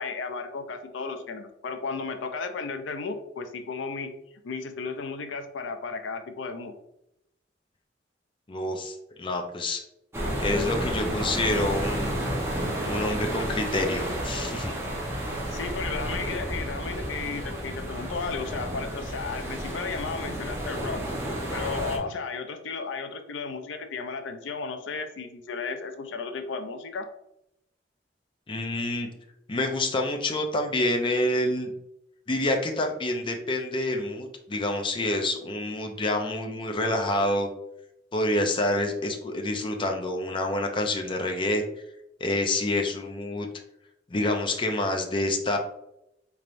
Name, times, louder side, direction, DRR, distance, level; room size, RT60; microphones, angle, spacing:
voice 1, 0.0-4.1 4.4-6.7 15.5-21.0 21.5-27.1, left 4 dB, 85° left, 7 dB, 0.4 m, -34 dB
voice 2, 8.5-9.8 10.4-12.1 12.9-14.7 28.5-29.1 29.5-31.7 32.3-37.5 38.1-41.6 42.2-43.5 44.1-45.6, left 1 dB, 25° left, 3 dB, 0.5 m, -27 dB
sound 1, 10.1-22.0, right 1 dB, 15° right, 0.8 m, -31 dB
4.3 x 3.3 x 2.5 m, 0.83 s
head